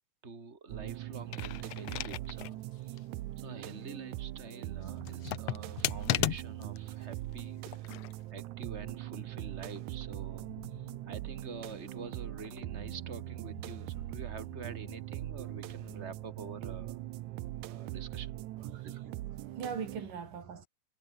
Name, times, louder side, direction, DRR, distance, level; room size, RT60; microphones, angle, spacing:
voice 1, 0.2-3.0 3.4-8.0 8.3-17.0 17.6-18.3 18.7-19.1, right 4 dB, 20° right, 3.3 m, -47 dB
sound 1, 0.7-20.0, right 16 dB, 75° right, 2.1 m, -41 dB
sound 2, 1.2-2.6 3.0-3.1 5.0-6.8 7.7-8.1, left 15 dB, 70° left, 1.6 m, -34 dB
sound 3, 10.4-16.7, left 3 dB, 45° left, 8.7 m, -55 dB
voice 2, 18.7-20.7, right 6 dB, 90° right, 5.2 m, -41 dB
omnidirectional pair, 3.7 m